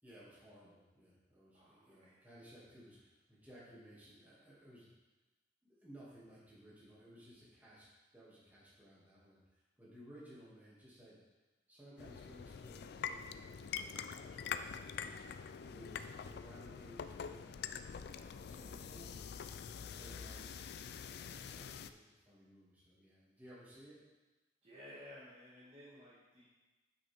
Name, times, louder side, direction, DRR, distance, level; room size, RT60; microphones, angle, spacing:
voice 1, 0.0-4.9 5.6-11.2 11.7-15.3 15.6-17.7 18.2-19.2 19.7-20.5 21.0-24.0, equal, 10° right, -8 dB, 2.2 m, -58 dB
voice 2, 1.5-2.3 20.0-20.5 24.6-26.5, left 1 dB, 35° right, -9 dB, 1.5 m, -56 dB
sound 1, 12.0-21.9, left 7 dB, 60° left, 0.3 m, -45 dB
8.8 x 5.4 x 3.5 m, 1.1 s
head